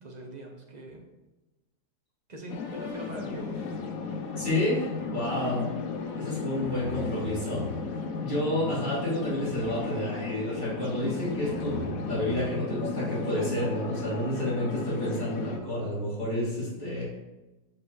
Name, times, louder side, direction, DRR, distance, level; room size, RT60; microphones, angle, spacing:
voice 1, 0.0-1.0 2.3-3.6, right 1 dB, 30° right, 0 dB, 1.1 m, -42 dB
sound 1, 2.5-15.6, left 4 dB, 60° left, 1.0 m, -35 dB
sound 2, 2.5-7.7 8.4-8.9 9.6-11.0 11.3-13.3, left 3 dB, 45° left, 1.5 m, -43 dB
voice 2, 4.4-4.8 5.1-5.6 6.1-7.7 8.2-17.0, left 1 dB, 25° left, -8 dB, 2.8 m, -30 dB
5.9 x 5.6 x 4.8 m, 1.1 s
omnidirectional pair, 1.9 m